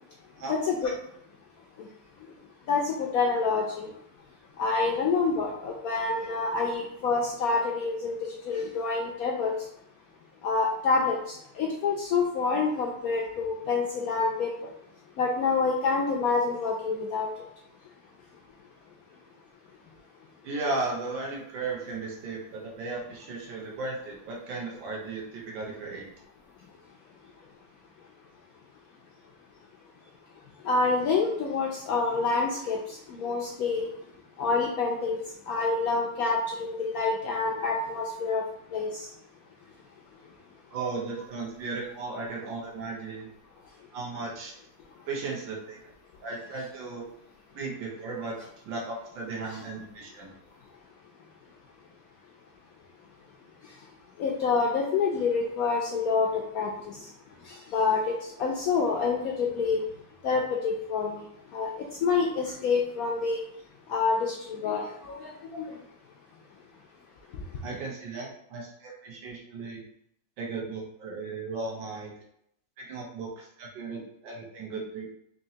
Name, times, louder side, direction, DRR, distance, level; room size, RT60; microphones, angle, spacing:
voice 1, 0.5-0.9 2.7-3.9 4.6-8.2 8.5-9.5 10.4-14.5 15.2-17.3 30.6-33.9 34.4-35.2 35.5-38.4 38.7-39.1 54.2-57.0 57.5-59.8 60.2-61.2 61.5-61.7 62.0-63.4 63.9-65.7, left 4 dB, 75° left, -1 dB, 0.8 m, -27 dB
voice 2, 20.4-26.1 40.7-43.3 43.9-44.5 45.1-45.8 46.2-47.1 47.5-48.4 48.6-50.3 67.6-69.8 70.4-72.1 72.8-75.1, right 3 dB, 85° right, -3 dB, 1.7 m, -35 dB
4.3 x 2.9 x 2.7 m, 0.72 s
omnidirectional pair, 2.0 m